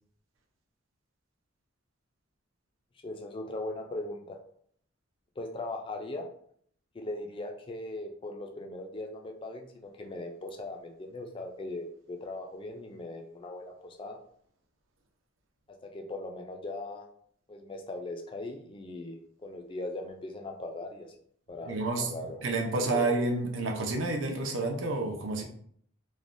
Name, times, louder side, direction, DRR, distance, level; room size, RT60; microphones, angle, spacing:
voice 1, 3.0-4.4 5.4-6.3 6.9-14.2 15.8-17.1 17.5-21.1 21.5-22.5 22.8-23.1, left 2 dB, 25° left, 3 dB, 0.3 m, -39 dB
voice 2, 21.7-22.1 22.4-25.4, right 2 dB, 65° right, 2 dB, 0.5 m, -29 dB
3.2 x 2.1 x 2.5 m, 0.62 s
head